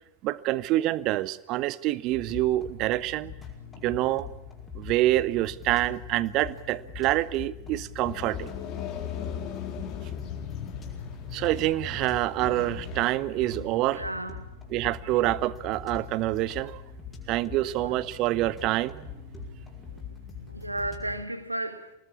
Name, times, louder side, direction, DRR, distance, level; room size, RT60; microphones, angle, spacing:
voice 1, 0.2-3.3 3.8-4.3 4.7-8.5 11.3-14.0 14.7-16.8 17.3-19.0, right 16 dB, 40° right, 0.9 m, -26 dB
sound 1, 2.1-21.2, left 7 dB, 15° left, 5.7 m, -43 dB
sound 2, 8.0-13.0, left 9 dB, 35° left, 4.4 m, -37 dB
voice 2, 13.6-14.5 17.8-18.0 19.8-20.1 20.5-21.9, right 1 dB, 85° right, 1.7 m, -34 dB
26.0 x 19.5 x 8.5 m
figure-of-eight pair, 90°, 0 cm